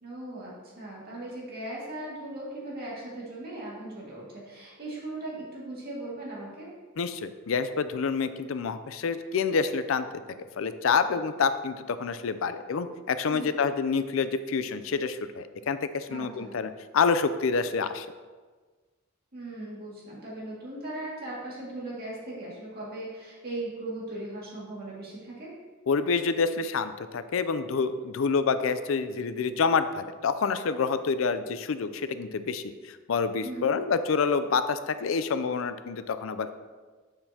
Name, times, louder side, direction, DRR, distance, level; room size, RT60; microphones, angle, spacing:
voice 1, 0.0-6.7 13.3-13.5 16.1-16.5 19.3-25.5 33.4-33.7, right 2 dB, 50° right, -5 dB, 2.1 m, -38 dB
voice 2, 7.0-10.1 10.6-18.1 25.9-36.6, left 5 dB, 75° left, 11 dB, 0.4 m, -27 dB
7.6 x 6.7 x 2.8 m, 1.4 s
head